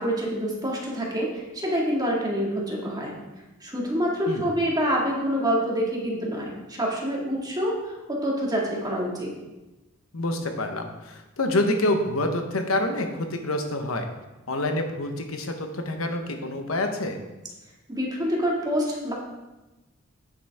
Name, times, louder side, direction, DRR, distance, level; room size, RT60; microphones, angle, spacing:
voice 1, 0.0-3.2 3.6-9.3 17.9-19.1, equal, 20° right, -3 dB, 2.0 m, -27 dB
voice 2, 10.1-14.1 14.5-17.2, left 1 dB, 90° left, 5 dB, 1.1 m, -27 dB
9.3 x 8.0 x 3.5 m, 1.1 s
head